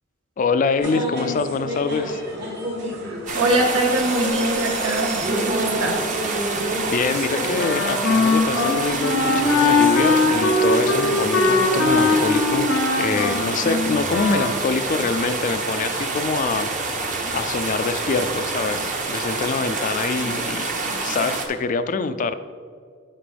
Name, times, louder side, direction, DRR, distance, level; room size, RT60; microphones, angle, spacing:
voice 1, 0.4-2.2 6.9-12.7 13.0-16.7 17.3-20.7 21.0-22.3, left 4 dB, 40° left, 11 dB, 0.3 m, -25 dB
sound 1, 0.8-18.5, equal, 55° right, 1.9 m, -31 dB
voice 2, 3.0-6.0, right 1 dB, 85° right, 1 dB, 1.4 m, -23 dB
sound 2, 3.3-21.5, right 3 dB, 40° right, 0.9 m, -27 dB
Wind instrument woodwind instrument, 7.6-14.6, left 3 dB, 75° left, 0.8 m, -21 dB
11.0 x 5.3 x 3.4 m, 2.1 s
head